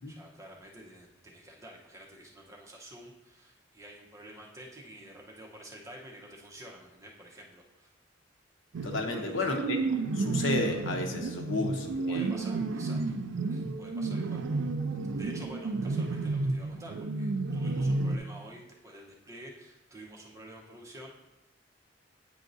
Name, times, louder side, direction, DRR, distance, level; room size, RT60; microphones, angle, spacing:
voice 1, 0.1-7.9 9.1-9.5 12.1-13.2 13.5-14.4 15.2-21.2, right 1 dB, 15° right, -1 dB, 0.9 m, -49 dB
sound 1, 8.7-18.2, right 3 dB, 75° right, 0.4 m, -31 dB
voice 2, 8.8-12.3, left 2 dB, 85° left, 3 dB, 0.9 m, -32 dB
9.1 x 4.6 x 2.7 m, 0.97 s
head